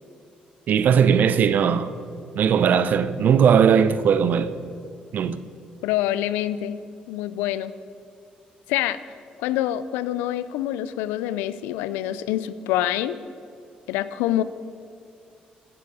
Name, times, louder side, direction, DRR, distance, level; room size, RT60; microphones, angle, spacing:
voice 1, 0.7-1.9 2.4-4.5 5.1-5.4, right 7 dB, 65° right, 0.6 m, -19 dB
voice 2, 5.8-6.7 7.1-7.7 8.7-9.0 9.4-13.2 13.9-14.4, left 13 dB, 90° left, 0.4 m, -26 dB
10.5 x 9.9 x 4.9 m
supercardioid pair, 65°, 3 cm